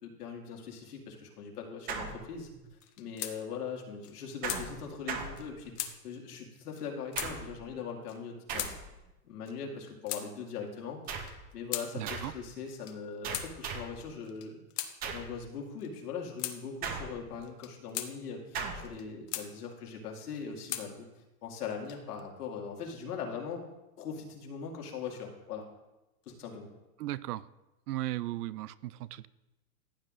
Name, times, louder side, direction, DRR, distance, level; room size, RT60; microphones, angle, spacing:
voice 1, 0.0-2.5 3.0-8.7 9.2-14.8 15.1-21.1 21.4-23.6 24.0-25.7 26.3-26.7, left 6 dB, 90° left, 1 dB, 2.2 m, -41 dB
sound 1, 1.9-2.7 4.4-5.9 7.1-7.7 8.5-9.1 11.1-11.5 12.1-12.5 13.2-14.0 15.0-15.4 16.8-17.5 18.5-19.0, right 5 dB, 20° right, 0.6 m, -39 dB
sound 2, 2.8-3.4 3.7-3.8 4.0-4.6 5.4-5.5 5.7-5.9 6.7-6.9 7.1-7.3 8.1-8.2 8.6-8.7 9.5-10.3 11.0-11.9 12.7-13.0 13.3-13.5 14.2-14.9 15.8-15.9 16.4-16.6 17.4-18.1 18.8-19.5 20.1-20.9 21.6-22.2, left 13 dB, 35° left, 0.7 m, -38 dB
voice 2, 11.9-12.3 27.0-27.5 27.9-29.3, right 15 dB, 80° right, 18 dB, 0.6 m, -36 dB
15.0 x 7.8 x 2.5 m, 0.98 s
supercardioid pair, 150°, 45 cm